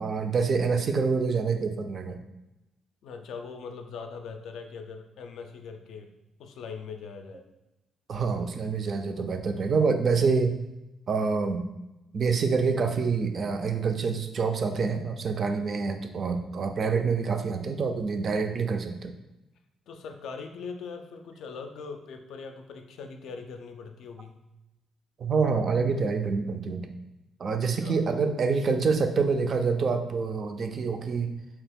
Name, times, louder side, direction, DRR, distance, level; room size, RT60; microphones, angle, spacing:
voice 1, 0.0-2.2 8.1-10.5 11.1-11.6 12.1-19.1 25.2-26.9 27.4-31.3, right 5 dB, 50° right, 6 dB, 0.3 m, -26 dB
voice 2, 3.0-6.1 6.4-7.4 19.9-24.4 27.6-28.0, left 5 dB, 75° left, 5 dB, 0.3 m, -41 dB
2.9 x 2.3 x 3.4 m, 0.97 s
cardioid pair, 90°, 0 cm